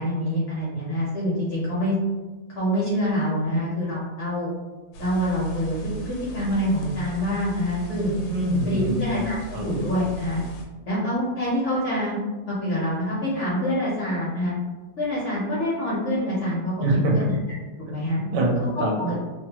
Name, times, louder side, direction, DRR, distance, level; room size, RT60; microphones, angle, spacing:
voice 1, 0.0-1.9 2.5-4.5 5.0-5.8 6.1-8.1 8.7-10.4 10.9-12.2 12.5-14.5 15.0-17.3 17.9-18.2, equal, 60° left, -7 dB, 0.8 m, -26 dB
sound 1, 4.9-10.6, right 6 dB, 80° left, 1.2 m, -39 dB
voice 2, 8.3-9.7 16.8-17.3 18.1-19.1, right 1 dB, 75° right, -1 dB, 1.2 m, -24 dB
3.0 x 2.1 x 2.8 m, 1.2 s
omnidirectional pair, 2.0 m